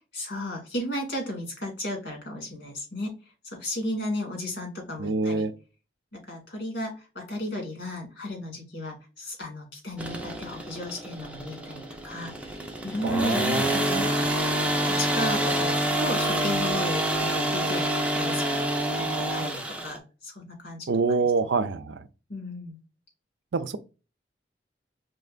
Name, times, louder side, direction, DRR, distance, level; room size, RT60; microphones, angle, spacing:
voice 1, 0.1-3.1 3.5-5.5 6.1-12.3 12.8-13.5 13.7-14.3 14.8-18.6 18.9-21.3 22.3-22.8, left 1 dB, 75° left, 2.1 m, -34 dB
voice 2, 5.0-5.5 13.0-14.2 20.9-22.0 23.5-23.8, right 4 dB, 90° right, 0.5 m, -26 dB
sound 1, 10.0-20.0, right 1 dB, 5° right, 0.7 m, -27 dB
4.4 x 3.3 x 2.4 m
head